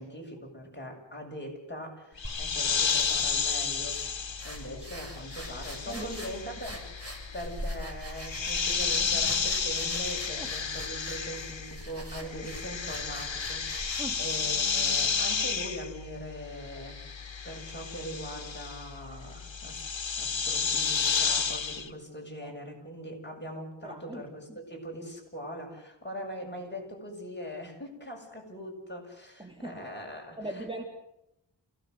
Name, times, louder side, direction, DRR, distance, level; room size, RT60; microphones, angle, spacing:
voice 1, 0.0-6.7 7.0-17.0 17.4-19.8 20.2-30.9, equal, 25° left, 0 dB, 7.4 m, -41 dB
sound 1, 2.2-11.9 12.2-21.9, left 5 dB, 85° left, 1.4 m, -32 dB
sound 2, 2.2-15.7, equal, 30° right, 6.7 m, -44 dB
voice 2, 5.9-6.3 10.4-10.5 12.2-12.3 14.0-14.2 22.4-22.5 23.8-24.2 24.5-24.6 29.4-29.8 30.4-30.8, right 1 dB, 10° right, 2 dB, 2.7 m, -40 dB
28.0 x 17.5 x 8.0 m, 0.84 s
wide cardioid pair, 65°, 45 cm